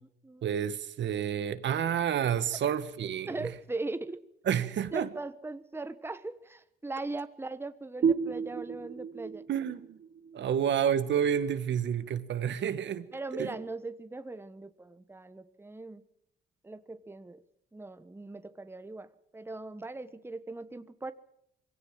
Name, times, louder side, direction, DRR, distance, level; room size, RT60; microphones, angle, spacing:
voice 1, 0.4-3.5 4.4-5.1 9.5-10.0 10.3-13.1 13.3-13.5, right 9 dB, 65° right, 1.6 m, -29 dB
voice 2, 3.3-4.2 4.9-9.4 10.4-10.6 13.1-16.0 16.6-17.4 17.7-21.1, right 2 dB, 10° right, 1.2 m, -39 dB
Sub - Sub Low, 8.0-11.4, right 6 dB, 50° right, 1.1 m, -33 dB
23.5 x 17.0 x 7.5 m
cardioid pair, 90°, 20 cm